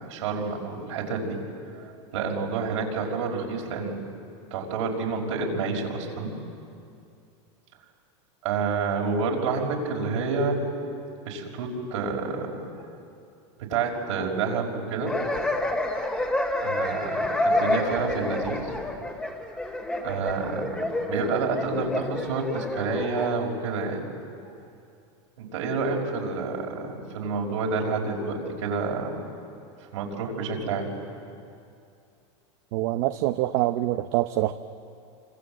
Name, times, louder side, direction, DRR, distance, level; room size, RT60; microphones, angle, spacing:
voice 1, 0.0-1.4 1.7-4.0 4.5-6.4 8.4-10.6 11.3-12.7 13.6-15.2 16.6-18.7 20.0-20.8 21.1-24.1 25.4-29.2 29.9-30.9, right 4 dB, 85° right, 0 dB, 5.5 m, -29 dB
sound 1, 15.1-23.3, left 1 dB, 5° left, 2.1 m, -28 dB
voice 2, 32.7-34.5, right 15 dB, 55° right, 8 dB, 0.8 m, -25 dB
28.0 x 25.5 x 7.8 m, 2.5 s
supercardioid pair, 160°, 16 cm